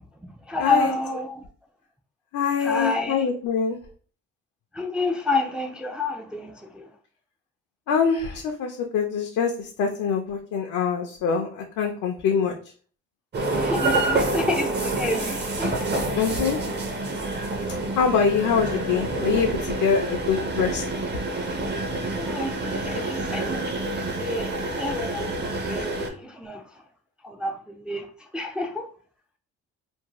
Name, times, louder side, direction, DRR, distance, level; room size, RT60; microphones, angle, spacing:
voice 1, 0.0-1.5 2.6-3.3 4.7-6.9 13.5-16.2 22.2-23.7 24.0-26.8 27.2-28.9, left 2 dB, 5° right, 0.3 m, -29 dB
voice 2, 0.6-0.9 2.3-3.8 7.9-12.5 16.2-16.6 18.0-20.9, left 6 dB, 70° left, 0.5 m, -24 dB
sound 1, 13.3-26.1, right 2 dB, 35° right, 0.6 m, -27 dB
2.6 x 2.1 x 2.9 m
cardioid pair, 90°, 30 cm